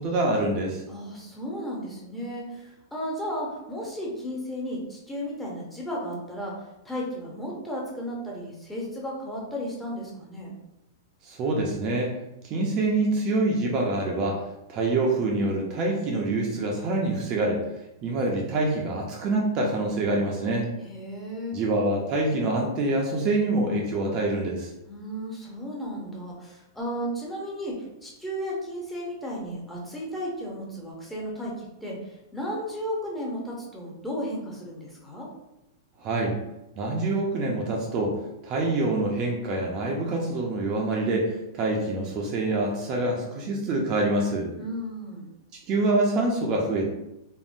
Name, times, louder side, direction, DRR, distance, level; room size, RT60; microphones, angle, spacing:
voice 1, 0.0-0.8 11.2-12.1 12.4-14.4 14.7-17.6 18.0-20.7 21.5-24.7 36.0-36.4 36.8-44.5 45.7-46.9, right 2 dB, 35° right, -1 dB, 0.5 m, -26 dB
voice 2, 0.9-6.5 6.8-10.5 20.8-21.6 24.8-35.3 44.6-45.3, equal, 5° left, -4 dB, 0.7 m, -34 dB
3.5 x 2.0 x 2.5 m, 0.90 s
hypercardioid pair, 135°, 2 cm